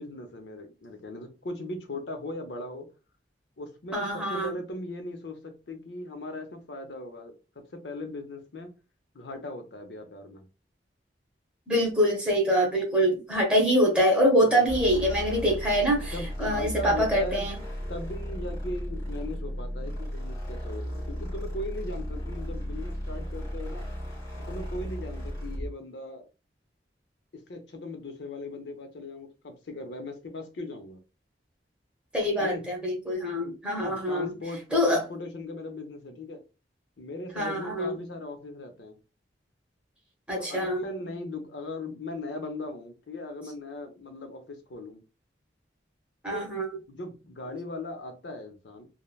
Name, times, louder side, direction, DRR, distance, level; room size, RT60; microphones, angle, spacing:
voice 1, 0.0-2.9 3.6-7.3 7.7-8.7 9.1-10.5 14.5-14.8 16.1-17.5 17.9-23.9 24.5-26.3 27.3-31.0 32.4-32.7 33.9-36.4 37.0-39.0 40.4-45.0 46.3-46.5 46.9-48.9, left 2 dB, 80° left, 0.7 m, -38 dB
voice 2, 3.9-4.5 11.7-17.6 32.1-34.3 34.7-35.0 37.3-37.9 40.3-40.8 46.2-46.7, equal, 5° right, 0.9 m, -25 dB
sound 1, 14.7-25.7, equal, 20° left, 1.5 m, -35 dB
3.2 x 2.1 x 2.3 m
head